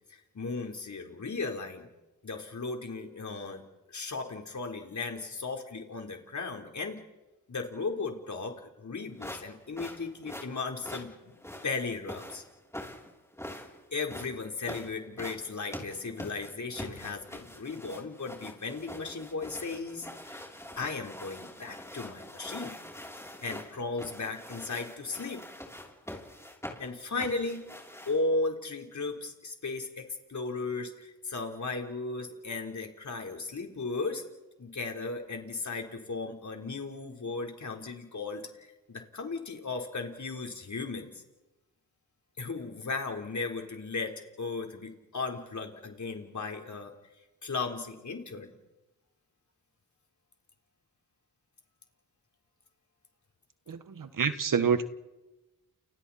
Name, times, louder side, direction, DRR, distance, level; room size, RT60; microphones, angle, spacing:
voice 1, 0.1-1.9 2.2-3.6 3.9-7.0 7.5-11.3 11.6-12.4 13.9-20.5 20.8-22.7 23.4-25.4 26.8-27.7 28.1-34.2 34.6-41.2 42.4-46.9 47.4-48.5, left 3 dB, 60° left, 3 dB, 4.1 m, -36 dB
sound 1, 9.2-28.3, left 1 dB, 10° left, 6.8 m, -44 dB
voice 2, 53.7-54.8, right 6 dB, 70° right, 11 dB, 1.5 m, -27 dB
30.0 x 29.0 x 4.3 m, 1.1 s
cardioid pair, 60°, 33 cm